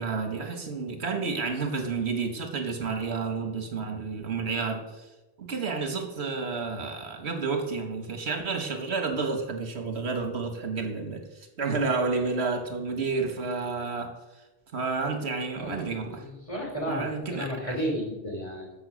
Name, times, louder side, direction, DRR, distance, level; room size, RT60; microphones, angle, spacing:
voice 1, 0.0-5.0 5.4-11.2 11.6-14.2 14.7-16.2 16.9-17.8, right 4 dB, 85° right, 5 dB, 1.6 m, -30 dB
voice 2, 15.6-17.0 17.3-18.7, equal, 30° left, -1 dB, 3.1 m, -33 dB
13.5 x 5.7 x 6.2 m, 1.1 s
omnidirectional pair, 1.1 m